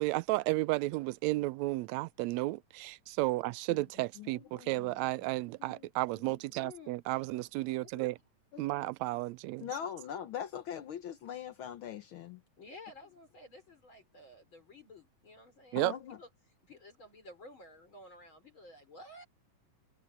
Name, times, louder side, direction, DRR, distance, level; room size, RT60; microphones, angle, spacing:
voice 1, 0.0-8.2 8.6-9.7 15.7-15.9, right 19 dB, 80° right, 1.7 m, -33 dB
voice 2, 4.2-4.9 5.6-5.9 8.5-8.9 9.6-12.4 15.7-16.2, left 9 dB, 70° left, 1.2 m, -42 dB
voice 3, 6.6-7.0 7.8-8.0 12.6-16.3 16.6-19.3, left 2 dB, 40° left, 5.1 m, -53 dB
omnidirectional pair, 3.5 m